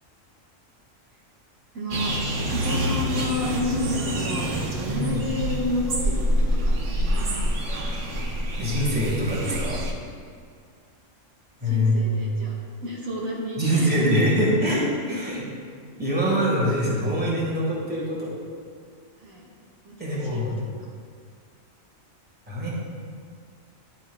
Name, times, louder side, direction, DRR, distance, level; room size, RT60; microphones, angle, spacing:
voice 1, 1.7-2.2 2.5-4.5 4.8-7.3 11.6-12.5 12.8-14.3 15.1-15.2 19.2-19.5 19.8-20.5, left 2 dB, 85° right, -5 dB, 1.9 m, -31 dB
sound 1, 1.9-9.9, equal, 65° right, 1.2 m, -26 dB
voice 2, 4.9-5.2 8.6-9.8 11.6-12.2 13.6-15.4 16.0-18.3 20.0-20.6 22.5-22.7, equal, 5° right, -4 dB, 1.6 m, -24 dB
10.5 x 9.0 x 2.3 m, 2.1 s
omnidirectional pair, 1.4 m